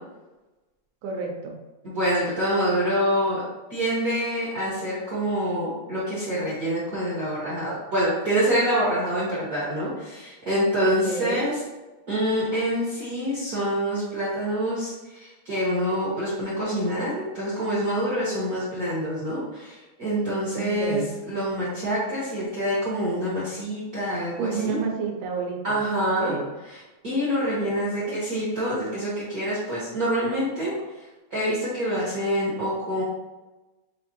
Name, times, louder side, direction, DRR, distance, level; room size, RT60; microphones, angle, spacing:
voice 1, 1.0-1.5 10.7-11.5 20.6-21.1 24.4-26.5 27.4-28.2, right 5 dB, 90° right, 0 dB, 2.1 m, -31 dB
voice 2, 1.8-3.4 3.7-11.5 12.1-21.0 21.3-24.8 25.6-26.4 27.0-30.7 31.3-33.0, equal, 70° right, -9 dB, 0.8 m, -26 dB
7.2 x 2.6 x 2.8 m, 1.1 s
omnidirectional pair, 3.5 m